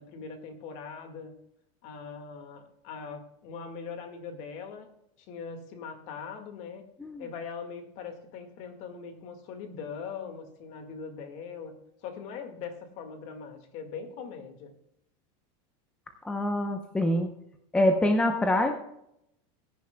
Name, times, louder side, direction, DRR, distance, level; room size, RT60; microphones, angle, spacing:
voice 1, 0.0-1.3 1.8-4.9 5.2-6.9 7.2-11.7 12.0-14.7, left 6 dB, 45° left, 6 dB, 1.9 m, -41 dB
voice 2, 16.2-17.3 17.7-18.7, left 1 dB, 5° left, 4 dB, 0.7 m, -25 dB
20.5 x 10.5 x 2.3 m, 0.79 s
supercardioid pair, 160°, 16 cm